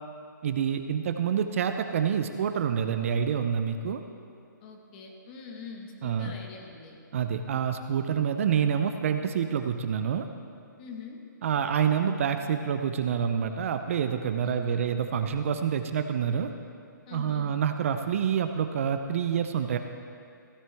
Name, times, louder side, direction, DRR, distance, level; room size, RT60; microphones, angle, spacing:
voice 1, 0.4-4.0 6.0-6.4 7.1-10.3 11.4-16.5 17.1-19.8, right 8 dB, 40° right, 7 dB, 0.5 m, -27 dB
voice 2, 4.6-7.0 10.8-11.2 14.4-14.9 17.0-17.5, left 5 dB, 30° left, 2 dB, 1.3 m, -44 dB
16.0 x 9.6 x 3.4 m, 2.4 s
hypercardioid pair, 155°, 11 cm